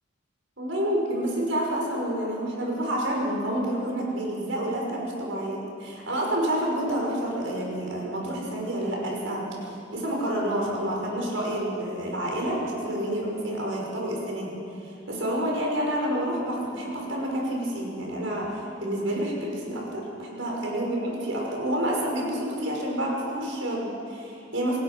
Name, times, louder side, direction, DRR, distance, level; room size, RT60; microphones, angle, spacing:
voice 1, 0.6-14.6 14.8-24.8, right 1 dB, 80° right, -2 dB, 5.9 m, -29 dB
28.0 x 18.0 x 6.2 m, 2.7 s
head